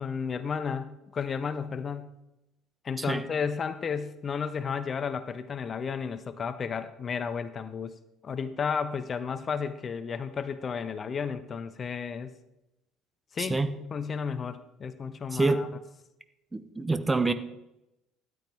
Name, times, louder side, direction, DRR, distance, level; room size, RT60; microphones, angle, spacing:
voice 1, 0.0-2.1 2.8-7.9 8.2-12.3 13.3-13.6 13.9-15.7, left 6 dB, 35° left, 12 dB, 0.7 m, -33 dB
voice 2, 13.4-13.7 15.3-15.6 16.5-17.3, right 3 dB, 15° right, 11 dB, 0.9 m, -26 dB
13.0 x 9.4 x 3.5 m, 0.88 s
figure-of-eight pair, 55°, 0 cm